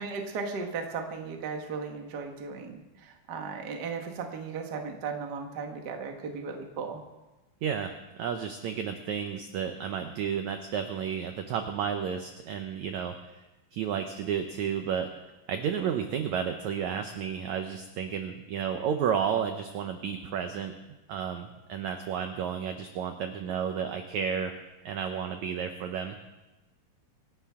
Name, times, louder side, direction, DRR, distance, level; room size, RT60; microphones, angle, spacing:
voice 1, 0.0-7.0, right 5 dB, 45° right, 3 dB, 1.3 m, -36 dB
voice 2, 7.6-13.4 13.7-15.1 15.5-20.7 21.1-24.6 24.8-26.1, right 7 dB, 75° right, 6 dB, 1.7 m, -32 dB
26.5 x 11.5 x 3.7 m, 1.1 s
omnidirectional pair, 4.3 m